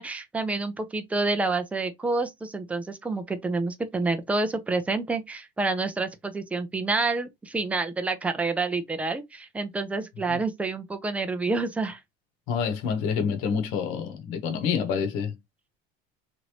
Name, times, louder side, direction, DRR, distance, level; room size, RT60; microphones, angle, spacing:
voice 1, 0.0-12.0, right 3 dB, 5° right, 0.4 m, -28 dB
voice 2, 12.5-15.3, left 6 dB, 75° left, 1.1 m, -27 dB
3.0 x 2.6 x 3.0 m
cardioid pair, 150°, 21 cm